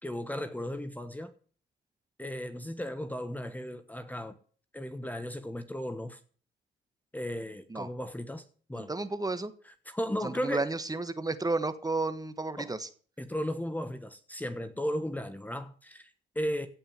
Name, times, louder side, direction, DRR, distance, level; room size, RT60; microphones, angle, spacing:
voice 1, 0.0-1.3 2.2-4.3 4.7-6.2 7.1-8.4 8.7-8.9 9.9-10.7 12.6-12.7 13.2-16.7, equal, 10° left, 1.2 m, -35 dB
voice 2, 8.7-9.5 10.2-12.9, right 3 dB, 20° right, 1.4 m, -32 dB
16.5 x 5.4 x 9.3 m
cardioid pair, 90°, 20 cm